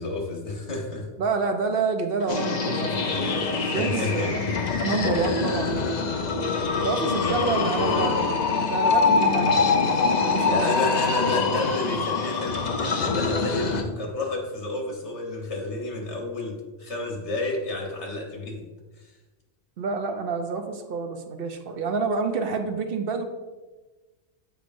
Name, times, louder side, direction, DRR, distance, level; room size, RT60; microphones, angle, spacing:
voice 1, 0.0-1.1 2.9-4.9 7.2-8.2 9.5-9.6 10.4-18.6 19.0-19.1, left 2 dB, 70° left, 0 dB, 1.5 m, -31 dB
voice 2, 1.2-4.4 4.8-6.1 6.8-8.2 8.7-10.7 19.8-23.2, right 4 dB, 60° right, 6 dB, 0.8 m, -28 dB
sound 1, 2.3-13.8, left 4 dB, 50° left, 0.6 m, -24 dB
7.9 x 4.7 x 2.6 m, 1.2 s
omnidirectional pair, 1.2 m